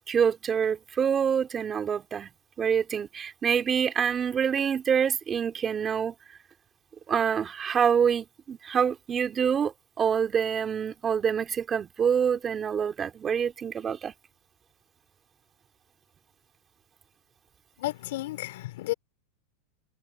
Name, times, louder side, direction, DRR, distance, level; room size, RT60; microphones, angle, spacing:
voice 1, 0.1-2.3 2.6-6.1 7.1-14.1, right 7 dB, 20° right, 3.7 m, -26 dB
voice 2, 17.8-18.9, left 17 dB, 70° left, 3.4 m, -32 dB
supercardioid pair, 150°, 0 cm